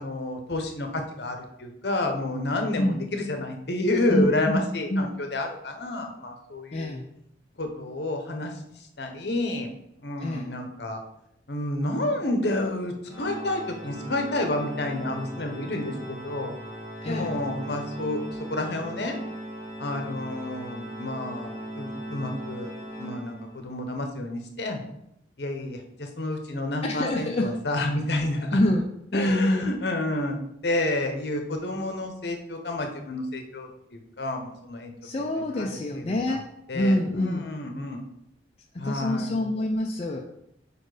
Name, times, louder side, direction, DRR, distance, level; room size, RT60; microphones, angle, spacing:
voice 1, 0.0-6.9 7.6-8.5 9.0-9.7 10.0-11.0 11.5-16.5 17.1-18.2 18.5-19.1 19.8-22.7 23.0-24.8 25.4-28.6 29.1-30.4 30.6-34.9 35.2-35.3 35.6-36.2 36.7-38.0 38.8-39.4, left 2 dB, 60° left, 4 dB, 0.9 m, -30 dB
voice 2, 4.1-4.6 4.9-5.1 6.7-7.1 10.2-10.5 17.0-17.4 26.8-27.5 28.5-28.9 29.1-29.7 35.0-36.4 36.7-37.5 38.7-40.2, left 1 dB, 35° left, 0 dB, 0.4 m, -26 dB
Organ, 13.0-23.8, right 1 dB, 5° right, 1.6 m, -38 dB
4.9 x 4.3 x 4.9 m, 0.78 s
head